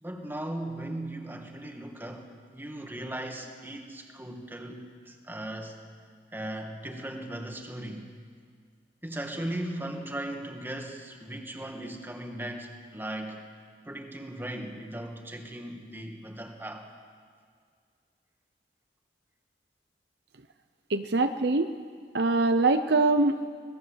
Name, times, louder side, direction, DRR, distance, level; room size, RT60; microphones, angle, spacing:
voice 1, 0.0-5.8 6.3-8.1 9.0-13.4 13.9-16.9, right 1 dB, 10° right, 3 dB, 2.2 m, -38 dB
voice 2, 20.9-21.7 22.1-23.4, right 3 dB, 65° right, 8 dB, 0.8 m, -23 dB
26.5 x 19.0 x 8.1 m, 2.1 s
head